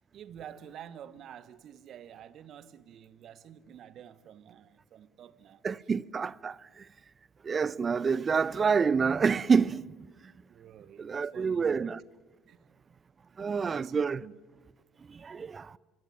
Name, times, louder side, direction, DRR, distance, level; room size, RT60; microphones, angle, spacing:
voice 1, 0.1-5.6 7.6-7.8 10.5-11.9 12.5-12.6 13.3-14.0 14.2-14.4, right 9 dB, 55° right, 1.3 m, -49 dB
voice 2, 5.6-6.8 7.4-9.9 11.0-12.0 13.4-14.2 15.1-15.8, right 5 dB, 35° right, 0.8 m, -28 dB
25.0 x 24.5 x 9.2 m
hypercardioid pair, 60°, 0 cm